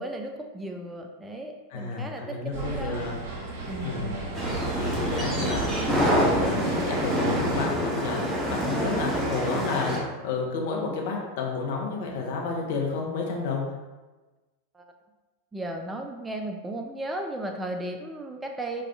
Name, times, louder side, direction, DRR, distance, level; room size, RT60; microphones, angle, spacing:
voice 1, 0.0-3.0 3.6-4.1 8.4-9.5 14.7-14.8 15.5-18.9, right 1 dB, 10° right, 3 dB, 0.3 m, -35 dB
voice 2, 1.7-3.2 3.8-4.1 4.4-13.7, left 4 dB, 55° left, 0 dB, 0.6 m, -31 dB
sound 1, 2.5-7.7, right 2 dB, 55° right, 0.7 m, -34 dB
sound 2, 4.3-10.0, equal, 5° left, 1.1 m, -26 dB
4.7 x 2.4 x 2.2 m, 1.2 s
figure-of-eight pair, 85°, 0 cm